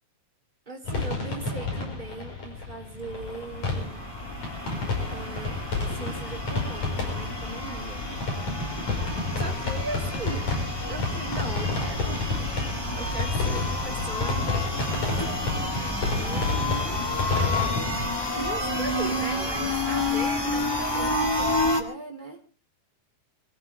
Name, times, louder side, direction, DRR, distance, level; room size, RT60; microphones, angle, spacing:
voice 1, 0.6-4.0 5.1-5.6 5.9-8.1 9.3-10.5 10.9-17.0 18.3-22.4, right 3 dB, 10° right, 0 dB, 3.3 m, -39 dB
sound 1, 0.8-18.1, left 3 dB, 45° left, 6.5 m, -30 dB
sound 2, 3.1-21.8, left 1 dB, 25° left, 0.5 m, -30 dB
23.0 x 15.0 x 3.6 m, 0.35 s
omnidirectional pair, 4.5 m